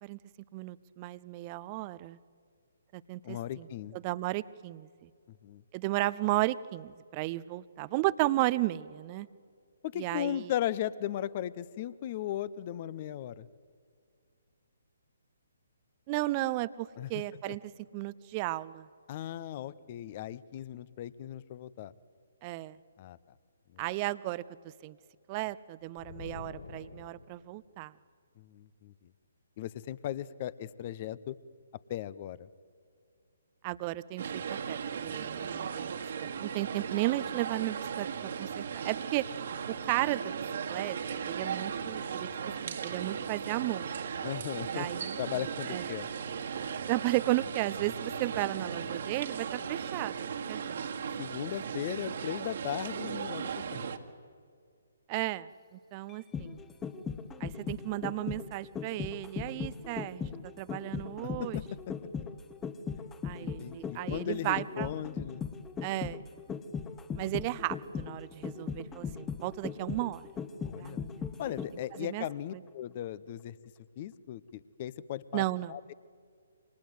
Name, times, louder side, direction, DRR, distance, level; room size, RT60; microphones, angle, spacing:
voice 1, 0.5-2.2 2.9-3.7 3.9-5.1 5.7-9.3 10.0-10.5 16.1-17.6 17.9-18.9 22.4-22.8 23.8-25.0 25.3-27.9 33.6-39.3 39.8-40.4 40.7-41.0 41.2-42.3 42.6-43.9 44.7-45.9 46.9-50.9 55.1-56.6 57.4-61.6 63.2-64.9 65.8-66.3 67.1-70.3 70.8-71.1 71.9-72.2 72.5-72.6 75.3-75.8, right 18 dB, 30° right, 18 dB, 0.7 m, -34 dB
voice 2, 3.2-4.0 5.4-5.6 9.8-13.5 17.0-17.1 17.5-17.6 19.1-21.9 23.0-23.2 23.7-23.8 28.4-29.1 29.6-31.4 31.9-32.5 44.2-46.1 51.2-53.9 61.2-61.6 62.9-63.0 63.4-65.5 70.6-71.0 71.4-73.5 74.0-75.4 75.7-75.9, left 11 dB, 35° left, 19 dB, 0.9 m, -37 dB
sound 1, 26.0-27.6, left 5 dB, 55° left, 5.1 m, -47 dB
sound 2, 34.2-54.0, right 7 dB, 50° right, 2.0 m, -37 dB
sound 3, 56.1-72.0 72.3-72.4, left 6 dB, 15° left, 1.2 m, -38 dB
28.5 x 26.0 x 8.1 m, 2.2 s
figure-of-eight pair, 135°, 0 cm